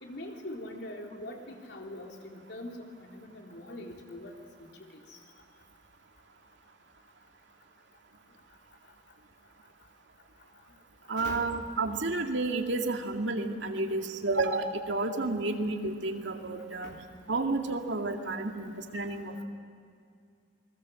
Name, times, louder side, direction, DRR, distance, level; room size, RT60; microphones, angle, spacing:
voice 1, 0.0-4.3 5.1-5.2 11.2-11.5 16.8-17.0, left 1 dB, 70° left, 1 dB, 3.7 m, -42 dB
voice 2, 11.1-16.9 17.3-19.4, right 2 dB, 85° right, 4 dB, 2.2 m, -31 dB
28.5 x 21.0 x 7.6 m, 2.4 s
head